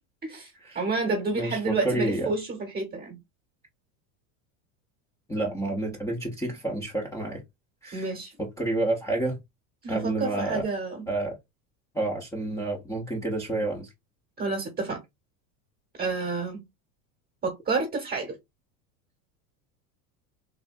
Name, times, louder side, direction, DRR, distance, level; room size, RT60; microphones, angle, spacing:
voice 1, 0.2-3.2 7.9-8.3 9.8-11.0 14.4-15.0 16.0-16.6 17.4-18.4, right 3 dB, 20° right, 1.1 m, -29 dB
voice 2, 1.3-2.3 5.3-7.4 7.8-8.1 8.4-9.4 9.9-10.6 11.1-11.3 11.9-13.9, right 2 dB, 5° left, 0.7 m, -29 dB
3.4 x 2.5 x 2.4 m
supercardioid pair, 130°, 44 cm